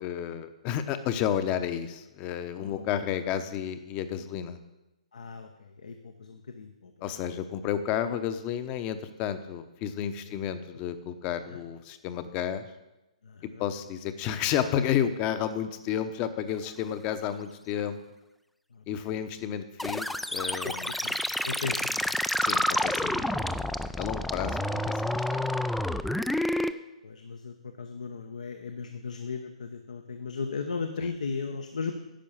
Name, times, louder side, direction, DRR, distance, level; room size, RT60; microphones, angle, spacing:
voice 1, 0.0-4.6 7.0-12.7 13.6-18.0 18.9-20.9 22.4-25.4 31.0-31.1, left 9 dB, 30° left, 10 dB, 0.8 m, -31 dB
voice 2, 2.5-2.9 5.1-7.2 10.3-10.4 11.5-11.6 13.2-13.6 18.7-19.2 20.6-21.2 21.4-22.2 27.0-31.9, left 4 dB, 75° left, 5 dB, 0.9 m, -37 dB
sound 1, 19.8-26.7, left 1 dB, ahead, 0.3 m, -29 dB
10.5 x 5.5 x 7.2 m, 0.98 s
hypercardioid pair, 130°, 4 cm